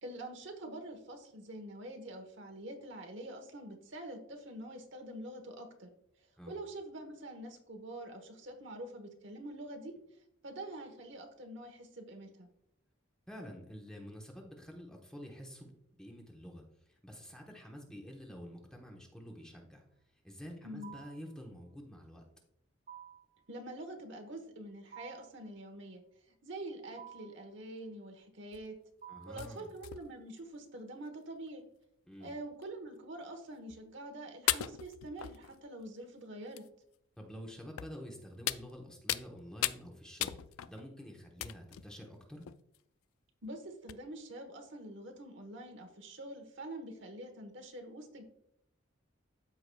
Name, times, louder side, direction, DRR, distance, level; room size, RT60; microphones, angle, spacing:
voice 1, 0.0-5.9 6.5-9.9 10.4-12.5 20.6-20.9 23.5-26.0 26.4-28.7 29.3-31.6 32.2-36.6 43.4-48.2, right 1 dB, 60° right, 4 dB, 1.1 m, -45 dB
voice 2, 13.3-15.7 16.0-16.6 16.9-19.8 20.2-22.2 29.1-29.7 32.1-32.3 37.2-40.4 40.6-42.5, equal, 5° left, 0 dB, 1.0 m, -48 dB
sound 1, 20.8-21.3 22.9-23.4 24.9-25.4 27.0-27.4 29.0-29.5, right 9 dB, 40° right, 0.4 m, -51 dB
sound 2, 28.5-28.8 29.4-30.4 31.1-31.2 31.5-31.6 32.6-32.7 33.7-33.8 34.5-35.9 36.6-36.7 37.8-38.0 38.5-39.3 39.6-39.8 40.2-40.8 41.4-41.9 42.4-42.8 43.4-43.5 43.9-44.0, left 13 dB, 85° left, 0.3 m, -37 dB
13.5 x 4.8 x 2.3 m, 0.76 s
head